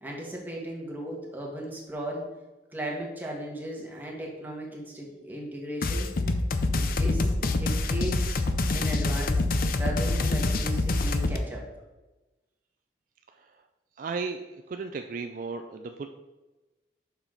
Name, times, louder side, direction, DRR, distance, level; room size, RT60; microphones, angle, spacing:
voice 1, 0.0-2.2 2.7-6.1 6.8-9.4 9.8-11.6, right 1 dB, 10° right, -2 dB, 1.5 m, -36 dB
sound 1, 5.8-11.4, left 2 dB, 55° left, 0.5 m, -26 dB
voice 2, 13.3-13.6 14.0-16.1, right 4 dB, 50° right, 6 dB, 0.4 m, -35 dB
7.1 x 5.8 x 3.9 m, 1.1 s
head